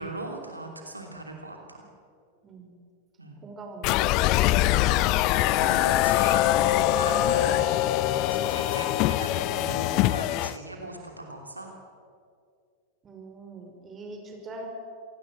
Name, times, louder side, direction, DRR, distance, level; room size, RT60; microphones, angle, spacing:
voice 1, 0.0-1.9 3.2-3.4 4.4-4.8 5.6-7.7 8.1-11.7, right 2 dB, 85° right, 2 dB, 2.9 m, -39 dB
voice 2, 3.4-4.1 4.4-4.7 10.8-10.9 13.0-14.7, right 2 dB, 20° right, 2 dB, 5.5 m, -43 dB
sound 1, 3.8-10.6, left 14 dB, 40° left, 0.7 m, -23 dB
27.0 x 18.0 x 7.7 m, 2.3 s
figure-of-eight pair, 90°, 0 cm